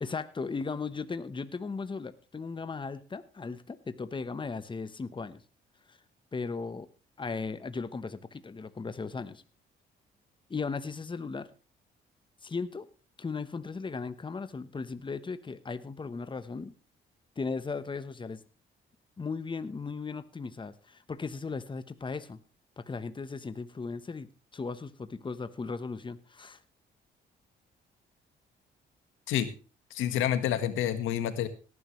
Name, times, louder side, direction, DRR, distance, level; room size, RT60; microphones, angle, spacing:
voice 1, 0.0-5.4 5.9-6.0 6.3-6.9 7.2-9.4 10.5-11.5 12.4-12.9 13.2-16.8 17.4-18.4 19.2-22.4 22.8-26.6, left 4 dB, 25° left, 12 dB, 1.1 m, -37 dB
voice 2, 29.9-31.5, left 10 dB, 90° left, 10 dB, 1.6 m, -28 dB
18.0 x 11.0 x 3.2 m, 0.34 s
cardioid pair, 90°, 20 cm